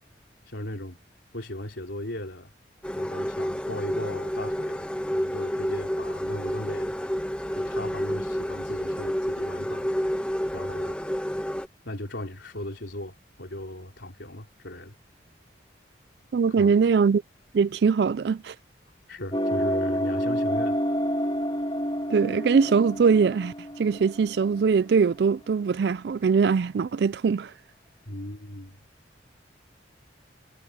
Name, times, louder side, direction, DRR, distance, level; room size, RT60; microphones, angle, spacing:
voice 1, 0.4-1.0 1.3-2.5 2.9-7.0 7.5-9.9 10.5-11.0 11.8-14.9 16.5-16.9 19.1-20.8 28.0-28.8, left 1 dB, 75° left, 3.4 m, -37 dB
sound 1, 2.8-11.7, equal, 5° left, 1.2 m, -29 dB
voice 2, 16.3-17.2 17.5-18.5 22.1-27.5, right 5 dB, 60° right, 0.3 m, -22 dB
sound 2, 19.3-24.8, equal, 25° left, 3.0 m, -28 dB
head